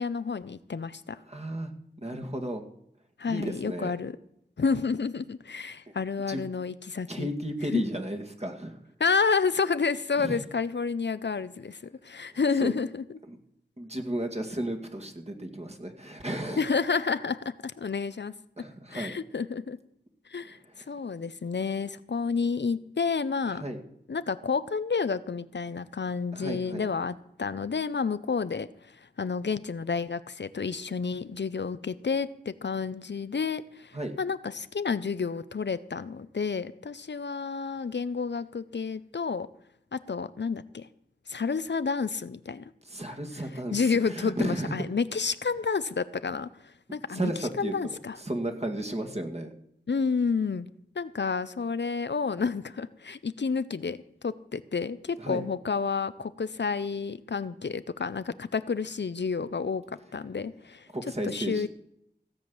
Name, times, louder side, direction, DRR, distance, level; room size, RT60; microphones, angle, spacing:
voice 1, 0.0-1.2 3.2-4.2 4.6-7.3 7.7-7.8 9.0-13.0 16.6-18.3 18.9-19.8 20.3-20.6 20.9-23.6 24.1-39.5 39.9-40.9 41.3-42.7 43.7-47.3 47.6-48.2 49.9-50.7 51.0-59.8 60.1-60.9 61.3-61.7, left 5 dB, 80° left, 14 dB, 0.6 m, -30 dB
voice 2, 1.3-1.7 2.0-2.6 3.3-3.9 5.9-6.0 6.3-6.5 7.1-8.8 10.2-10.4 12.6-12.7 13.3-13.4 13.8-16.6 18.6-19.1 20.7-20.9 23.5-23.8 26.3-26.8 33.9-34.1 42.8-44.8 47.1-49.5 55.2-55.4 60.9-61.7, right 1 dB, 35° right, 4 dB, 2.2 m, -34 dB
16.5 x 7.9 x 7.1 m, 0.73 s
wide cardioid pair, 45°, 18 cm